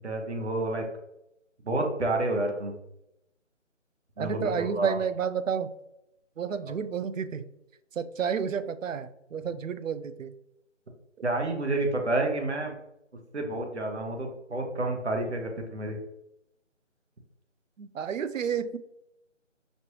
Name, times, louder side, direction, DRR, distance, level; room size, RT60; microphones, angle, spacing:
voice 1, 0.0-0.8 1.6-2.8 4.2-5.0 11.2-12.7 13.3-16.0, right 2 dB, 60° right, 2 dB, 1.0 m, -29 dB
voice 2, 4.2-5.7 6.4-7.5 8.0-10.3 17.8-18.8, right 7 dB, 90° right, 12 dB, 0.5 m, -31 dB
5.2 x 2.6 x 2.9 m, 0.84 s
figure-of-eight pair, 175°, 38 cm